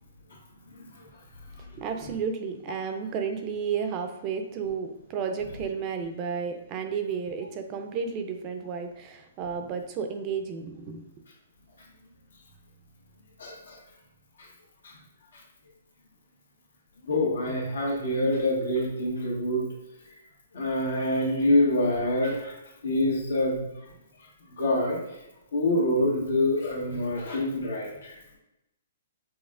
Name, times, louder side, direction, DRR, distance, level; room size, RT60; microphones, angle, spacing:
voice 1, 1.7-11.0, right 6 dB, 30° right, 6 dB, 0.4 m, -32 dB
voice 2, 13.4-13.8 14.4-14.5 14.8-14.9 17.0-19.6 20.5-22.6 22.8-23.7 24.5-25.2 25.5-28.4, left 1 dB, 85° left, -2 dB, 1.5 m, -26 dB
5.4 x 3.4 x 2.4 m, 0.92 s
hypercardioid pair, 155°, 0 cm